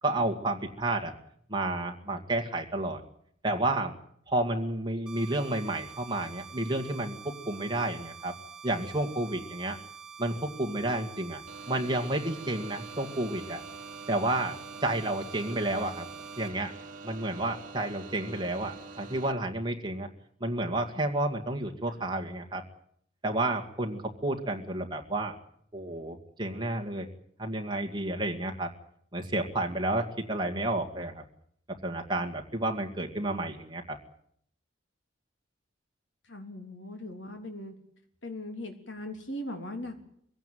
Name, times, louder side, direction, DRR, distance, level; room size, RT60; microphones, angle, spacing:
voice 1, 0.0-1.1 1.5-3.0 3.4-3.9 4.3-8.4 8.6-9.8 10.2-11.4 11.7-13.6 14.1-14.6 14.8-16.1 16.4-16.7 17.0-20.1 20.4-22.6 23.2-25.4 25.7-27.1 27.4-28.7 29.1-31.2 31.8-34.0, right 2 dB, 25° right, 2 dB, 2.1 m, -31 dB
sound 1, 5.1-16.5, right 7 dB, 5° right, 2.5 m, -47 dB
sound 2, 11.5-19.3, right 4 dB, 45° right, 2.0 m, -46 dB
voice 2, 36.3-37.7 38.2-40.0, left 1 dB, 70° left, 5 dB, 3.5 m, -39 dB
22.5 x 16.5 x 9.4 m, 0.68 s
head